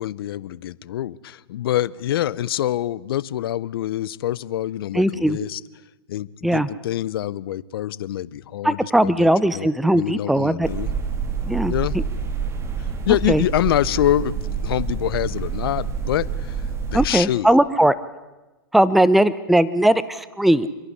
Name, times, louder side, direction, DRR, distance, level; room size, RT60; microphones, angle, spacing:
voice 1, 0.0-5.6 6.1-9.3 9.5-10.9 11.7-12.0 12.8-16.6 16.9-17.5, left 12 dB, 65° left, 20 dB, 0.7 m, -25 dB
voice 2, 4.9-5.4 6.4-6.7 8.6-10.7 11.5-11.7 13.3-13.4 16.9-17.9 18.7-20.7, right 1 dB, ahead, 17 dB, 0.6 m, -18 dB
sound 1, 10.6-17.1, right 6 dB, 20° right, 1.9 m, -27 dB
25.5 x 11.5 x 9.7 m, 1.1 s
hypercardioid pair, 120°, 13 cm